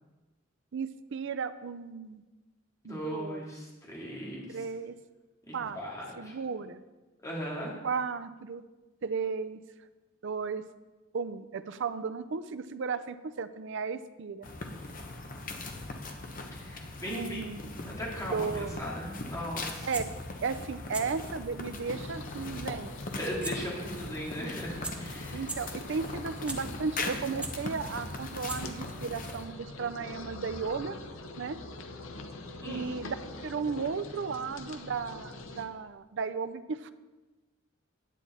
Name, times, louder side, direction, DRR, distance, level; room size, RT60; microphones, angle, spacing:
voice 1, 0.7-2.2 2.8-3.4 4.5-4.9 5.5-5.8 6.2-6.8 7.8-8.6 9.0-9.6 10.2-10.6 11.1-14.5 17.1-17.7 18.3-18.9 19.8-20.1 20.4-22.9 25.3-31.0 31.4-31.6 32.6-33.2 33.4-36.9, right 5 dB, 65° right, 13 dB, 0.5 m, -35 dB
voice 2, 2.8-4.6 5.5-6.4 7.2-7.8 16.5-19.9 23.2-25.4 32.6-32.8, equal, 15° left, -4 dB, 2.1 m, -38 dB
sound 1, 14.4-29.4, left 2 dB, 45° left, 1.0 m, -40 dB
sound 2, 19.9-20.1 20.8-21.0 21.5-21.6 23.4-23.5 23.9-24.0 24.5-24.6 24.8-24.9 25.4-25.6 26.1-26.6 27.1-27.5 28.2-28.3 28.5-28.8 29.2-29.3, right 2 dB, 5° right, 0.8 m, -37 dB
sound 3, 21.9-35.7, left 2 dB, 75° left, 0.9 m, -44 dB
9.9 x 8.5 x 4.2 m, 1.2 s
head